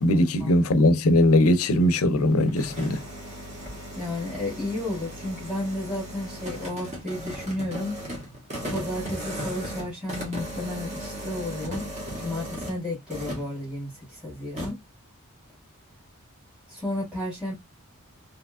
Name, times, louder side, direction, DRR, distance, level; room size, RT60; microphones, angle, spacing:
voice 1, 0.0-3.0, left 1 dB, 80° left, 0.6 m, -20 dB
sound 1, 2.3-12.8 13.1-13.5 14.6-14.7, right 1 dB, 35° right, 1.4 m, -36 dB
voice 2, 4.0-8.0 8.7-11.9 12.2-14.8 16.7-17.5, left 1 dB, 5° right, 1.7 m, -32 dB
3.4 x 2.9 x 2.3 m
head